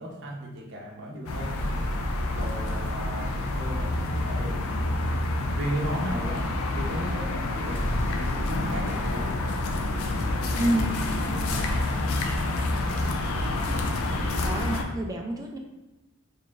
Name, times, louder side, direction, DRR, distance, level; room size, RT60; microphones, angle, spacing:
voice 1, 0.0-1.5 2.3-4.7 5.6-9.4 10.6-13.5, equal, 55° right, -3 dB, 0.8 m, -36 dB
sound 1, 1.3-14.8, left 2 dB, 90° left, 0.5 m, -28 dB
sound 2, 1.6-6.1 7.7-12.4, equal, 25° left, 1.3 m, -37 dB
voice 2, 10.6-10.9 14.4-15.6, right 1 dB, 15° right, 2 dB, 0.4 m, -28 dB
4.3 x 3.1 x 2.4 m, 1.0 s
head